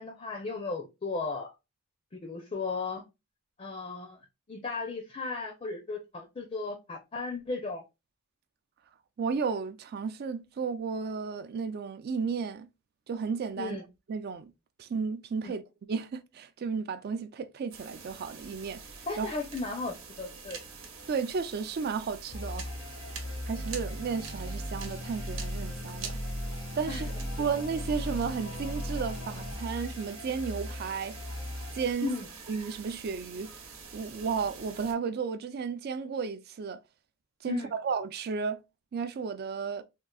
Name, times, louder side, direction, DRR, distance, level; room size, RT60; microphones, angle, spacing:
voice 1, 0.0-1.5 2.2-3.0 3.6-4.2 4.5-7.8 13.6-13.8 15.4-15.5 19.1-20.6 26.9-27.1 32.0-32.3 37.5-37.7, left 3 dB, 30° left, 0.5 m, -35 dB
voice 2, 9.2-12.7 13.1-14.5 14.8-15.6 15.9-19.3 21.1-22.7 23.5-26.2 26.8-27.1 27.4-31.2 31.7-32.1 32.5-33.5 33.9-36.8 37.4-38.6 38.9-39.8, right 5 dB, 50° right, 0.3 m, -33 dB
sound 1, 17.7-34.9, right 5 dB, 75° right, 0.9 m, -46 dB
sound 2, 22.3-31.9, left 1 dB, 85° left, 1.0 m, -37 dB
3.7 x 2.3 x 2.2 m
head